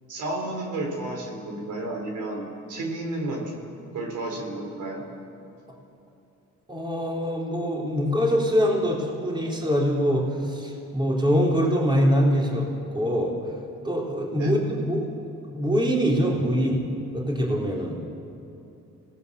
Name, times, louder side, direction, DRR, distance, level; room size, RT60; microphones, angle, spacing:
voice 1, 0.1-3.5 3.9-5.0 14.3-14.6, right 2 dB, 75° right, 1 dB, 4.4 m, -32 dB
voice 2, 6.7-13.4 13.8-15.1 15.5-16.8 17.1-18.0, equal, 15° right, -2 dB, 3.9 m, -24 dB
26.5 x 18.5 x 6.9 m, 2.8 s
cardioid pair, 90°, 30 cm